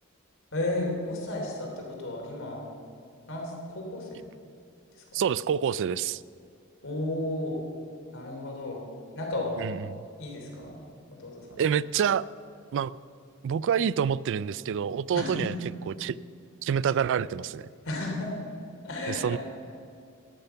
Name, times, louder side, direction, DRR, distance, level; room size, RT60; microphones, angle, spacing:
voice 1, 0.5-2.7 3.3-4.3 4.9-5.2 6.8-7.6 8.1-8.8 9.1-9.7 10.2-10.8 11.2-11.6 15.1-15.5 16.9-17.0 17.8-18.3 18.8-19.4, left 1 dB, 65° left, -1 dB, 3.4 m, -33 dB
voice 2, 5.1-6.2 9.6-10.0 11.6-12.3 12.7-12.9 13.4-15.5 15.9-16.2 16.6-17.7 19.1-19.4, right 7 dB, 60° right, 20 dB, 0.3 m, -27 dB
14.0 x 10.5 x 5.7 m, 2.4 s
head